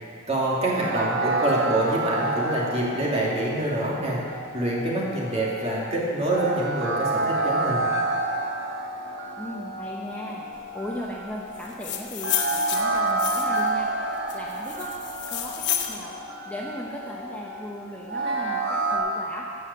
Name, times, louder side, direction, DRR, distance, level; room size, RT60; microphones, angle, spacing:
voice 1, 0.3-4.2 4.5-7.8, right 1 dB, 30° right, -4 dB, 2.3 m, -26 dB
voice 2, 0.8-1.1 9.4-10.5 10.7-13.9 14.3-14.9 15.3-16.2 16.4-19.5, equal, 10° left, -4 dB, 0.9 m, -37 dB
sound 1, 0.8-19.0, right 2 dB, 55° right, 1.3 m, -29 dB
sound 2, 11.6-13.7 14.3-16.0, left 10 dB, 60° left, 1.0 m, -30 dB
15.0 x 5.7 x 6.9 m, 2.3 s
head